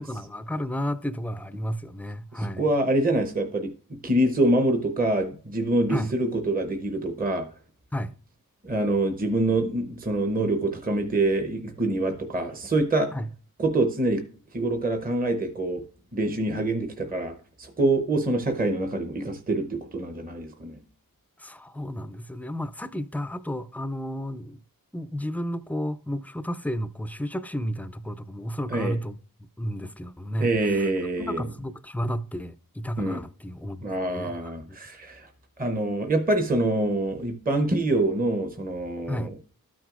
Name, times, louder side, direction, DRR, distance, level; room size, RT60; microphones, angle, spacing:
voice 1, 0.0-2.6 5.9-6.1 7.9-8.1 13.1-13.3 21.4-24.6 24.9-29.2 29.6-30.9 31.2-34.8 39.1-39.3, equal, 5° left, 0.4 m, -32 dB
voice 2, 2.3-3.7 4.0-7.5 8.6-13.1 13.6-14.2 14.5-15.8 16.1-20.8 28.7-29.0 30.4-31.4 33.0-33.2 33.8-35.3 35.6-39.3, right 2 dB, 25° right, 0.8 m, -25 dB
12.5 x 6.1 x 2.5 m
wide cardioid pair, 60°, 36 cm